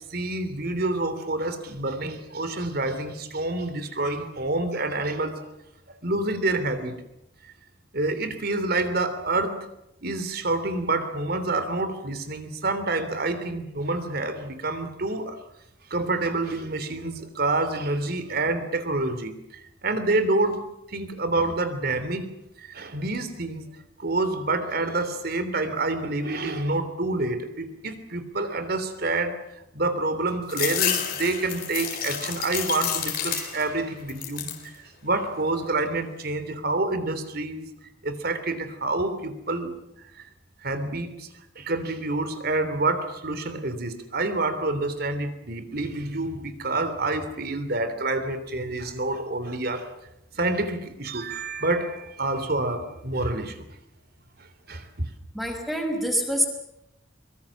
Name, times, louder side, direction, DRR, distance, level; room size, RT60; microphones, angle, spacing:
voice 1, 0.1-5.5 5.9-7.0 7.9-9.7 10.0-15.4 15.9-19.3 19.8-20.6 20.9-22.3 22.6-23.6 24.0-29.3 29.7-34.5 35.0-37.7 38.0-39.7 40.6-41.3 41.5-49.9 50.3-53.6 54.7-55.1, right 2 dB, 50° right, 10 dB, 3.2 m, -27 dB
sound 1, 30.5-33.8 34.1-34.7 35.2-35.9, left 9 dB, 50° left, 4.2 m, -30 dB
voice 2, 55.3-56.5, equal, ahead, 1 dB, 5.5 m, -26 dB
23.5 x 23.5 x 7.4 m, 0.84 s
head